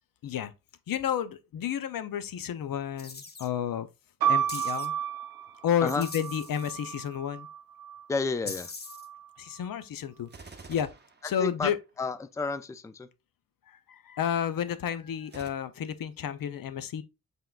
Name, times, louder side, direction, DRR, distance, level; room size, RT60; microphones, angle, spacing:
voice 1, 0.9-3.9 4.3-4.9 5.6-7.5 9.4-10.3 10.7-10.9 11.2-11.8 13.7-17.0, left 9 dB, 75° left, 0.5 m, -31 dB
sound 1, 3.0-3.5 4.5-4.9 5.9-7.1 8.4-9.1, left 3 dB, 30° left, 0.7 m, -42 dB
sound 2, 4.2-8.0 8.9-9.6, right 9 dB, 85° right, 0.6 m, -32 dB
voice 2, 8.1-8.7 11.4-11.7 12.0-13.1, left 3 dB, 10° left, 0.3 m, -31 dB
Gunshot gunfire, 10.3-12.0 15.3-15.5, right 4 dB, 30° right, 0.7 m, -48 dB
5.7 x 3.7 x 2.3 m
cardioid pair, 60°, 34 cm